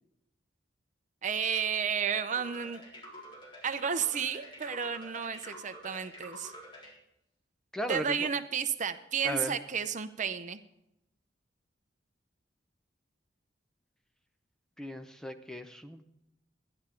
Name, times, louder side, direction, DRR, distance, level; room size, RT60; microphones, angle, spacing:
voice 1, 1.2-2.8 3.6-6.5 7.9-10.6, right 7 dB, 45° right, 10 dB, 0.6 m, -32 dB
sound 1, 2.3-7.0, equal, 25° left, 4.1 m, -48 dB
voice 2, 7.7-8.3 9.2-9.6 14.8-16.1, equal, 5° left, 7 dB, 0.8 m, -37 dB
13.5 x 11.0 x 4.4 m, 0.85 s
head